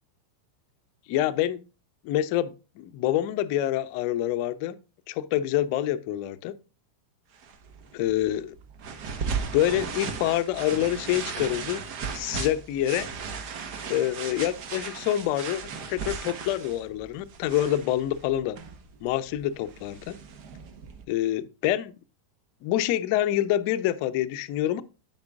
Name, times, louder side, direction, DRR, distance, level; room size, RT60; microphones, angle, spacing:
voice 1, 1.1-1.6 2.0-4.8 5.1-6.5 7.9-8.5 9.5-11.8 12.1-13.1 13.9-18.6 19.0-20.1 21.1-22.0 22.6-24.8, left 12 dB, 45° left, 0.6 m, -26 dB
sound 1, 7.4-21.0, right 5 dB, 45° right, 1.2 m, -37 dB
9.5 x 8.7 x 2.4 m
figure-of-eight pair, 90°, 0 cm